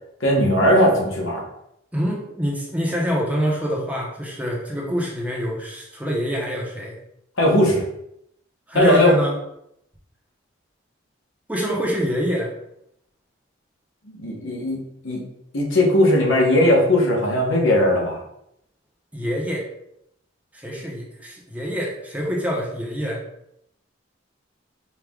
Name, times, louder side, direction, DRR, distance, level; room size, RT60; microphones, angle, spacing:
voice 1, 0.2-1.4 7.4-7.8 8.7-9.1 14.1-14.8 15.0-15.2 15.5-18.2, left 1 dB, 85° left, -1 dB, 1.0 m, -18 dB
voice 2, 1.9-7.0 8.7-9.4 11.5-12.5 19.1-19.7 20.5-23.2, equal, 5° right, -3 dB, 0.7 m, -25 dB
4.6 x 2.3 x 3.6 m, 0.78 s
head